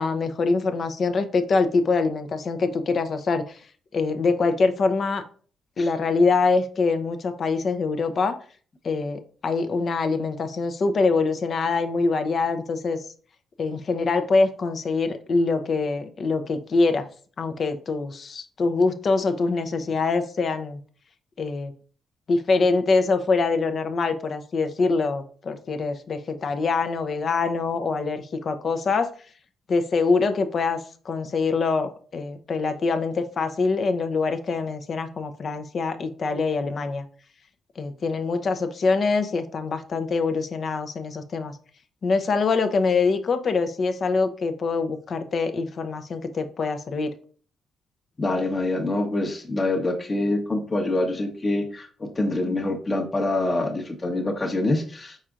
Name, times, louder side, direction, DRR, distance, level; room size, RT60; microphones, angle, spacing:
voice 1, 0.0-3.6 3.9-5.2 5.8-8.4 8.8-13.0 13.6-17.1 17.4-20.8 21.4-21.7 22.3-29.1 29.7-37.0 37.8-41.6 42.0-47.1, left 4 dB, 55° left, 8 dB, 0.7 m, -24 dB
voice 2, 48.2-55.2, left 2 dB, 35° left, 2 dB, 1.0 m, -25 dB
5.0 x 4.2 x 2.4 m, 0.43 s
supercardioid pair, 50°, 0 cm